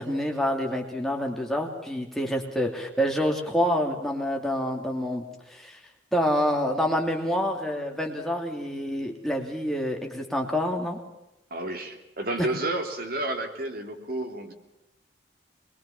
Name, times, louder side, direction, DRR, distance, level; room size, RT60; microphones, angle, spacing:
voice 1, 0.0-5.2 5.5-5.8 6.1-11.0 12.4-12.5, equal, ahead, 1 dB, 2.7 m, -27 dB
voice 2, 11.5-14.5, right 2 dB, 50° right, 4 dB, 3.0 m, -31 dB
24.5 x 22.5 x 7.1 m, 0.93 s
head